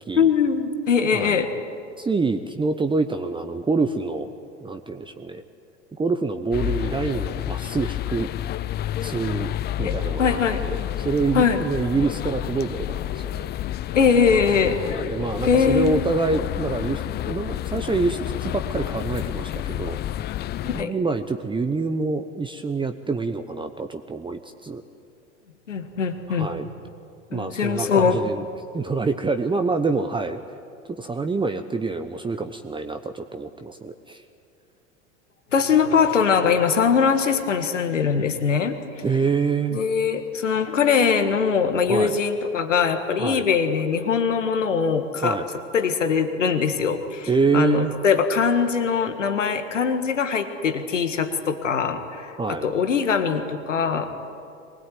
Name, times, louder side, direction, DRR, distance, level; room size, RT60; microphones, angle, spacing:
voice 1, 0.1-1.5 9.8-10.6 11.3-11.6 13.9-14.8 15.5-16.0 20.6-20.9 25.7-26.5 27.3-28.2 35.5-39.0 39.7-45.4 45.7-54.1, left 6 dB, 85° left, 8 dB, 1.8 m, -22 dB
voice 2, 2.0-4.3 4.6-5.4 5.9-8.3 9.0-13.5 15.0-20.0 20.7-24.8 26.3-26.7 27.3-28.4 28.7-30.4 31.0-34.2 39.0-39.8 41.9-42.2 43.2-43.5 45.2-45.4 47.3-47.9 52.4-52.7, right 4 dB, 15° right, 7 dB, 1.0 m, -26 dB
sound 1, 6.5-20.8, left 13 dB, 30° left, 0.5 m, -29 dB
23.5 x 20.5 x 9.3 m, 2.6 s
hypercardioid pair, 85°, 36 cm